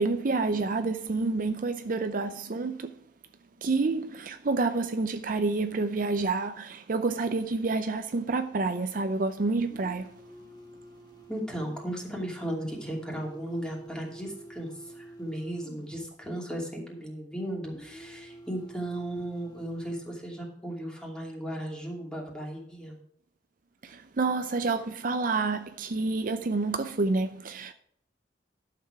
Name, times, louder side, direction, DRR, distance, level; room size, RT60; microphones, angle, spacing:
voice 1, 0.0-3.0 3.6-10.1 23.8-27.7, right 3 dB, 50° right, 0.6 m, -28 dB
sound 1, 9.6-16.1 17.6-20.0, right 2 dB, 25° left, 1.6 m, -49 dB
voice 2, 11.3-23.0, right 1 dB, 5° left, 2.7 m, -36 dB
11.5 x 6.8 x 4.8 m
head